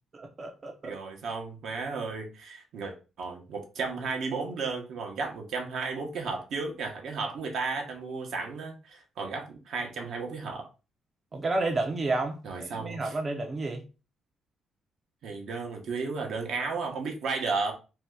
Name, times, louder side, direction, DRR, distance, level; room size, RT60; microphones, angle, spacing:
voice 1, 0.1-0.9 11.3-13.8, right 2 dB, 35° right, 0.5 m, -31 dB
voice 2, 0.8-10.7 12.4-13.1 15.2-17.7, right 4 dB, 70° right, 0.8 m, -34 dB
2.7 x 2.2 x 3.4 m
cardioid pair, 90°, 0 cm